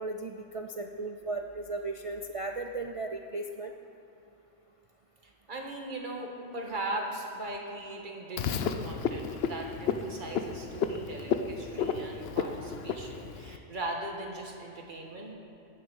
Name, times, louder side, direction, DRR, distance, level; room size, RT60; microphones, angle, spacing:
voice 1, 0.0-3.7, right 2 dB, 55° right, 4 dB, 0.3 m, -36 dB
voice 2, 5.5-15.3, right 2 dB, 40° right, 0 dB, 1.7 m, -39 dB
Frog, 8.4-13.6, left 6 dB, 60° left, 0.8 m, -32 dB
16.0 x 7.1 x 6.3 m, 2.8 s
omnidirectional pair, 1.3 m